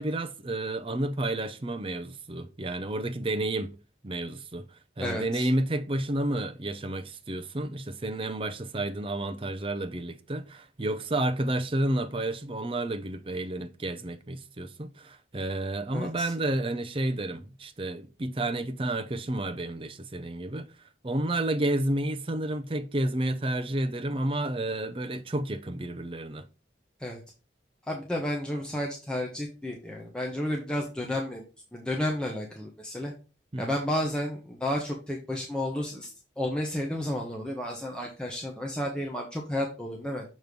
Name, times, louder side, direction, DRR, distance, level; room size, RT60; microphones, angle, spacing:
voice 1, 0.0-3.7 4.0-20.7 21.0-26.5 33.5-33.8, right 1 dB, 30° right, 0.6 m, -31 dB
voice 2, 5.0-5.5 15.9-16.3 27.0-27.2 27.9-31.4 31.7-33.1 33.6-40.2, left 1 dB, 5° left, 0.9 m, -32 dB
6.7 x 3.1 x 5.1 m
head